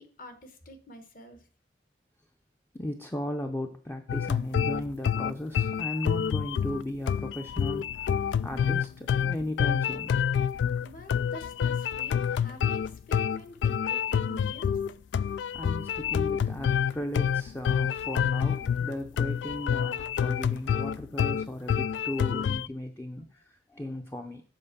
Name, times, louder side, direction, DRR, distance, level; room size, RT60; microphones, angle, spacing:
voice 1, 0.0-1.5 10.8-14.7, left 1 dB, 50° left, 8 dB, 1.3 m, -47 dB
voice 2, 2.7-10.2 15.5-24.4, left 1 dB, 15° left, 5 dB, 0.5 m, -36 dB
sound 1, 4.1-22.7, left 8 dB, 90° left, 0.3 m, -27 dB
7.8 x 4.4 x 6.7 m, 0.41 s
head